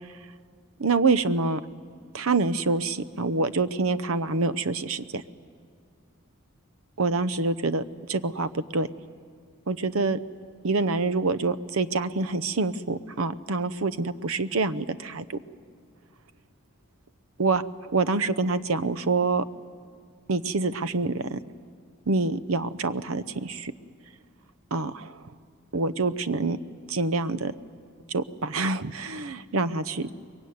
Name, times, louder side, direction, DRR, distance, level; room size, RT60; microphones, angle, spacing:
voice 1, 0.8-1.6 2.1-5.2 7.0-7.8 8.1-8.9 9.7-10.2 10.6-15.4 17.4-17.6 17.9-19.4 20.3-21.4 22.1-23.7 24.7-25.2 25.7-26.6 26.9-27.5 28.1-30.1, right 3 dB, 80° right, 14 dB, 0.8 m, -26 dB
23.0 x 22.5 x 9.5 m, 2.2 s
head